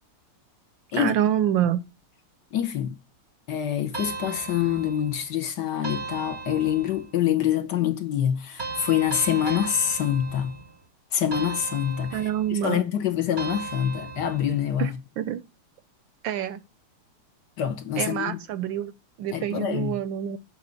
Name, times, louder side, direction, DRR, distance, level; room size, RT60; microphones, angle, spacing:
voice 1, 0.9-1.8 12.1-12.8 14.8-14.9 15.2-15.4 16.2-16.6 18.0-18.9 19.2-20.4, right 10 dB, 75° right, 1.2 m, -26 dB
voice 2, 2.5-3.0 3.5-10.6 11.1-12.2 12.5-15.0 17.6-18.4 19.3-20.0, left 10 dB, 60° left, 1.3 m, -26 dB
sound 1, 3.9-5.3 5.8-7.2 8.6-10.8 11.3-12.6 13.4-14.7, right 4 dB, 40° right, 0.8 m, -36 dB
10.5 x 3.6 x 6.9 m
omnidirectional pair, 2.4 m